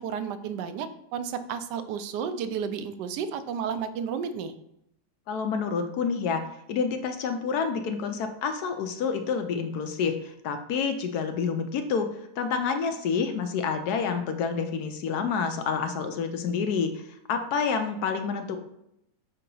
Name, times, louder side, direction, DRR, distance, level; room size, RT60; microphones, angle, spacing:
voice 1, 0.0-4.5, right 7 dB, 80° right, 11 dB, 1.2 m, -32 dB
voice 2, 5.3-6.4 6.7-12.1 12.4-18.6, left 6 dB, 70° left, 7 dB, 1.0 m, -28 dB
6.4 x 2.8 x 5.3 m, 0.78 s
omnidirectional pair, 1.9 m